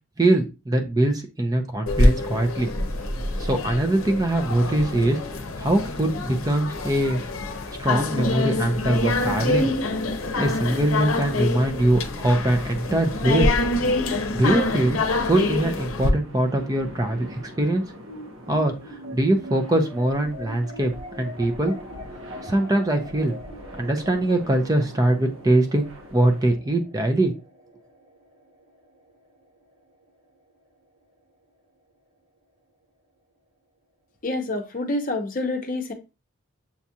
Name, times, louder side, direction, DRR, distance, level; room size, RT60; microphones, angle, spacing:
voice 1, 0.2-2.7 3.3-7.2 7.8-9.7 10.4-13.5 14.3-15.0 15.2-17.8 18.5-18.8 19.1-20.9 21.2-21.7 22.4-23.3 23.8-27.3, right 1 dB, 20° right, 0.5 m, -22 dB
sound 1, 1.9-16.1, left 2 dB, 90° left, 0.7 m, -26 dB
sound 2, 12.5-26.5, equal, 80° right, 1.2 m, -45 dB
sound 3, 18.1-30.7, equal, 60° right, 1.6 m, -42 dB
voice 2, 34.2-35.9, left 2 dB, 40° left, 0.7 m, -27 dB
7.0 x 2.4 x 2.7 m
head